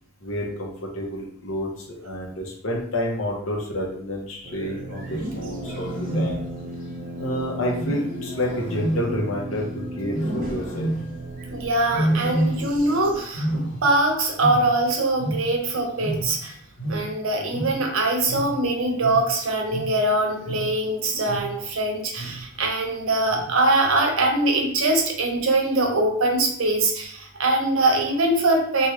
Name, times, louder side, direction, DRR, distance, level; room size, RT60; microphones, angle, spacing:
voice 1, 0.2-6.4 7.2-10.9, left 1 dB, 85° left, -2 dB, 0.9 m, -29 dB
sound 1, 4.4-13.2, right 1 dB, 45° right, 0.4 m, -35 dB
Wild animals, 5.0-6.7 7.8-9.7 10.1-11.3 11.9-13.0 13.2-15.7 16.0-20.9 21.3-21.7 22.2-22.6 23.3-23.8, right 1 dB, 65° left, 1.1 m, -29 dB
voice 2, 11.5-16.5 16.9-28.9, right 2 dB, 85° right, 2 dB, 0.7 m, -22 dB
3.4 x 2.3 x 3.1 m, 0.64 s
head